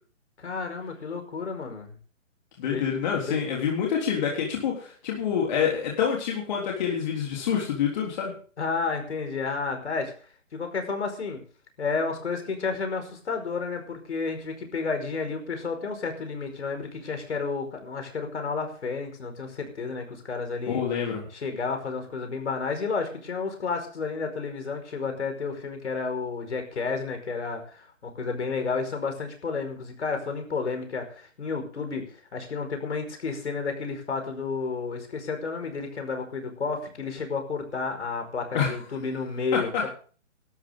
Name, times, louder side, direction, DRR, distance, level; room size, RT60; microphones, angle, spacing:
voice 1, 0.4-2.0 2.7-2.9 3.2-3.4 8.6-10.1 10.5-11.4 11.8-20.8 21.3-32.1 32.3-39.9, left 4 dB, 60° left, 5 dB, 5.3 m, -31 dB
voice 2, 2.6-8.3 20.7-21.2 38.5-38.7, left 7 dB, 35° left, -2 dB, 3.6 m, -27 dB
18.5 x 13.0 x 3.8 m, 0.42 s
figure-of-eight pair, 150°, 38 cm